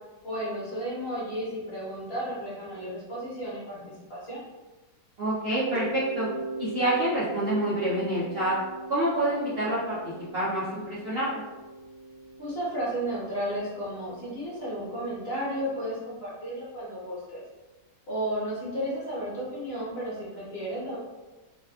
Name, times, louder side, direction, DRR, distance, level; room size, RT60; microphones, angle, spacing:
voice 1, 0.2-4.4 12.4-17.4 18.1-21.0, equal, 40° left, -8 dB, 1.2 m, -33 dB
voice 2, 5.2-6.3 6.6-8.6 8.9-10.0 10.3-11.4, right 1 dB, 60° right, -10 dB, 0.6 m, -27 dB
Mallet percussion, 5.7-14.3, right 1 dB, 80° left, 1.2 m, -39 dB
4.0 x 2.2 x 2.3 m, 1.2 s
omnidirectional pair, 1.9 m